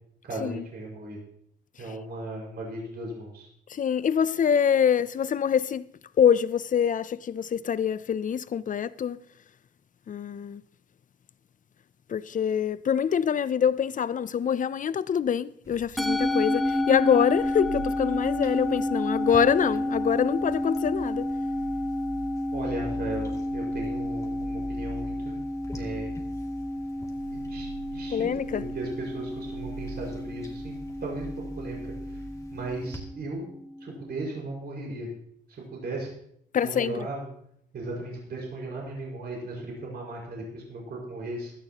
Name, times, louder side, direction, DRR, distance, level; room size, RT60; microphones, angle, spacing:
voice 1, 0.2-1.2 1.8-3.5 22.5-25.4 25.7-26.1 27.3-32.2 32.5-33.5 33.8-35.1 35.5-36.1 36.6-37.3 37.7-41.5, right 2 dB, 55° right, 5.3 m, -37 dB
voice 2, 3.7-5.9 6.2-9.2 10.1-10.6 12.1-21.3 28.1-28.6 36.5-37.1, left 8 dB, 40° left, 0.5 m, -25 dB
sound 1, 15.6-33.0, equal, 15° left, 2.5 m, -44 dB
Musical instrument, 16.0-34.5, left 1 dB, ahead, 1.1 m, -31 dB
16.5 x 13.0 x 3.0 m
cardioid pair, 90°, 20 cm